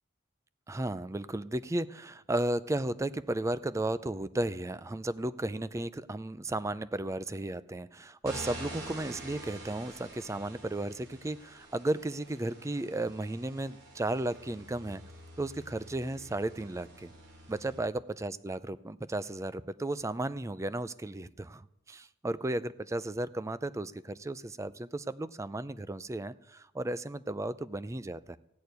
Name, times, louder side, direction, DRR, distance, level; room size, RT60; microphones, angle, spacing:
voice 1, 0.7-15.0 15.4-17.1 17.5-21.6 21.9-28.4, right 1 dB, 15° right, 15 dB, 0.4 m, -34 dB
sound 1, 8.2-17.8, right 1 dB, 55° right, 4.9 m, -47 dB
15.5 x 6.7 x 9.4 m, 0.81 s
head